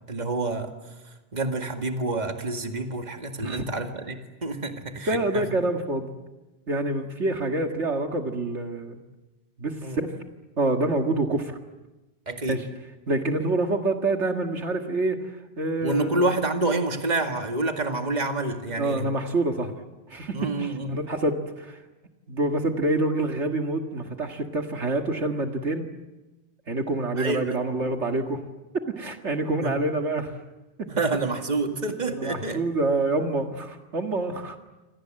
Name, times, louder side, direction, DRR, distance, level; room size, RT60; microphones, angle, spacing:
voice 1, 0.1-0.7 1.3-5.5 9.8-10.0 12.3-12.6 15.8-19.0 20.3-21.0 27.2-27.6 29.6-29.7 30.9-32.6, right 2 dB, 35° right, 5 dB, 2.2 m, -28 dB
voice 2, 5.1-6.1 6.7-9.0 9.6-10.1 10.6-11.6 12.5-12.7 13.1-16.1 18.8-19.8 20.1-21.8 22.3-25.9 26.7-28.4 28.9-30.3 30.8-30.9 32.1-34.6, right 2 dB, 70° right, 4 dB, 2.2 m, -27 dB
28.5 x 25.5 x 7.7 m, 1.1 s
omnidirectional pair, 1.2 m